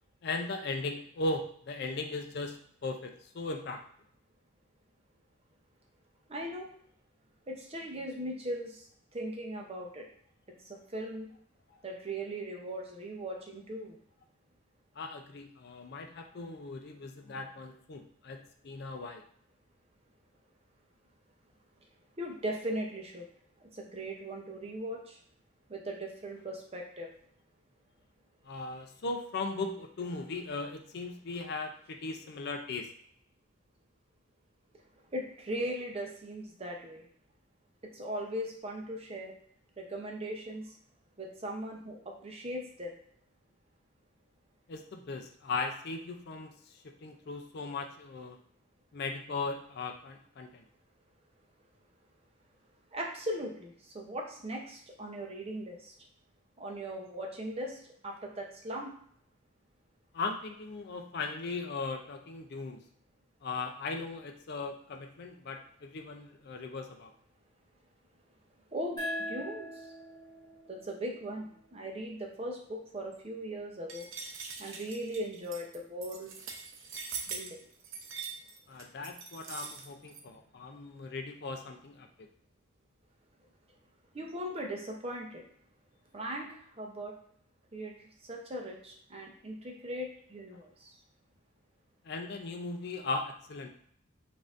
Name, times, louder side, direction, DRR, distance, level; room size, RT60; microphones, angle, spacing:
voice 1, 0.2-3.8 11.7-11.8 15.0-19.2 28.4-32.9 44.7-48.4 48.9-50.6 60.1-62.8 63.4-67.1 78.7-82.1 92.0-93.7, left 3 dB, 50° left, 4 dB, 0.4 m, -38 dB
voice 2, 6.3-6.6 7.5-8.8 9.1-10.1 10.7-11.3 11.8-14.0 22.2-23.3 23.7-25.2 25.7-27.1 35.1-37.0 37.9-39.3 39.8-40.6 41.2-42.0 42.2-42.9 52.9-55.9 56.6-57.8 58.0-58.9 68.7-69.0 69.3-69.7 70.7-74.1 74.6-76.3 77.3-77.6 84.1-85.4 86.1-86.5 86.8-87.1 87.7-87.9 88.3-90.9, right 1 dB, 30° right, 0 dB, 0.6 m, -38 dB
sound 1, 69.0-72.2, equal, 20° left, 1.4 m, -42 dB
sound 2, 73.9-80.2, right 5 dB, 70° right, 0.6 m, -42 dB
5.3 x 2.6 x 2.5 m, 0.64 s
head